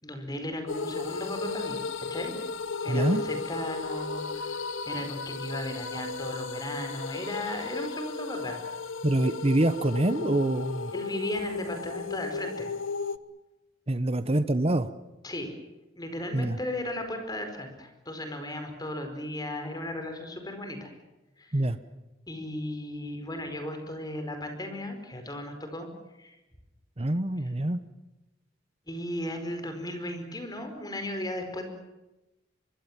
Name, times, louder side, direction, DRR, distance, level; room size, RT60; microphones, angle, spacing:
voice 1, 0.0-2.3 2.8-8.6 10.9-12.7 15.2-15.5 16.0-20.9 21.4-21.6 22.3-25.9 26.2-26.4 28.9-31.6, left 1 dB, 20° left, 6 dB, 4.7 m, -36 dB
sound 1, 0.7-13.2, left 4 dB, 85° left, 1.0 m, -35 dB
voice 2, 2.9-3.2 9.0-10.9 13.9-14.9 16.3-16.6 21.5-21.8 27.0-27.8, right 1 dB, 30° right, 12 dB, 1.0 m, -25 dB
24.5 x 23.0 x 7.4 m, 1.0 s
head